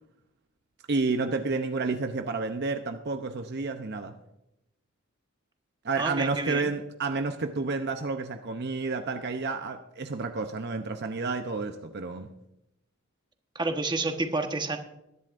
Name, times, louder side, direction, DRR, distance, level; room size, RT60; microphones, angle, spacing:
voice 1, 0.9-4.1 5.8-12.3, right 3 dB, 55° right, 7 dB, 0.7 m, -30 dB
voice 2, 6.0-6.7 13.5-14.8, right 2 dB, 20° right, 5 dB, 1.2 m, -29 dB
21.0 x 11.0 x 2.6 m, 0.87 s
head